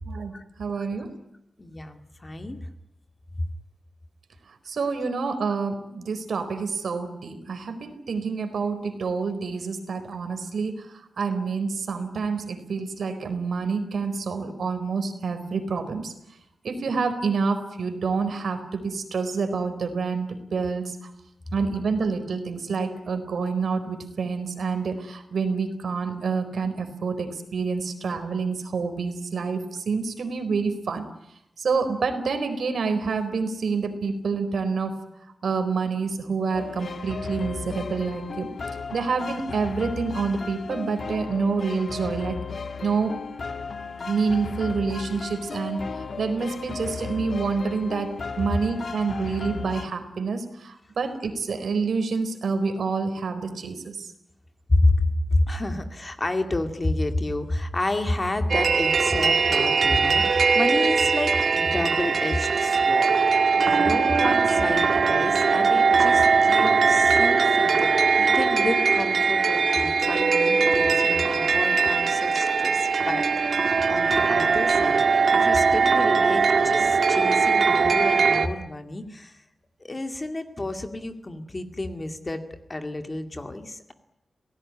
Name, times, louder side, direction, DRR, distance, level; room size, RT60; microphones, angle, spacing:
voice 1, 0.6-1.1 4.7-10.9 11.2-16.1 16.6-21.1 21.5-31.1 31.6-34.9 35.4-38.5 38.9-42.4 42.8-43.1 44.1-45.8 46.2-54.1, right 4 dB, 75° right, 9 dB, 4.3 m, -27 dB
voice 2, 1.6-2.7 54.7-63.1 63.5-73.3 73.9-79.4 79.8-82.4 82.7-83.9, left 2 dB, 25° left, 7 dB, 2.2 m, -29 dB
sound 1, 36.5-49.9, left 4 dB, 50° left, 1.5 m, -35 dB
sound 2, 58.5-78.5, right 5 dB, 55° right, 2.0 m, -21 dB
27.5 x 18.5 x 9.7 m, 0.83 s
wide cardioid pair, 175°, 0 cm